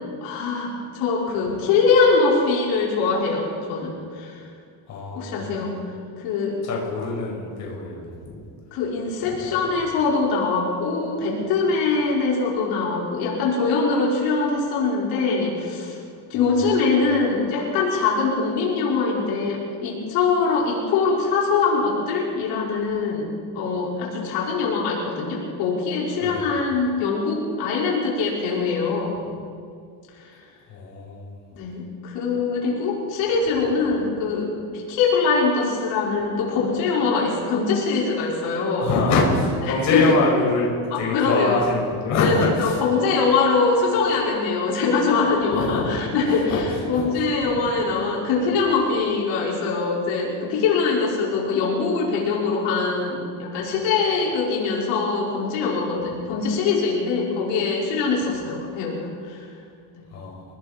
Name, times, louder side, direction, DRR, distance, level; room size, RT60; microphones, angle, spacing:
voice 1, 0.2-4.5 5.1-5.7 6.2-6.6 8.7-16.0 16.3-23.3 23.5-29.3 30.2-30.3 31.5-38.9 39.6-40.2 40.9-41.7 42.2-59.5 59.9-60.1, left 4 dB, 60° left, -4 dB, 5.4 m, -23 dB
voice 2, 4.9-5.4 6.7-8.4 9.3-9.4 26.2-26.4 30.7-31.2 38.8-40.7 41.0-42.7 45.5-46.0 46.5-46.6 46.9-47.1 47.4-47.7 60.1-60.4, left 3 dB, 35° left, -3 dB, 5.5 m, -24 dB
30.0 x 19.5 x 4.5 m, 2.2 s
cardioid pair, 180°, 47 cm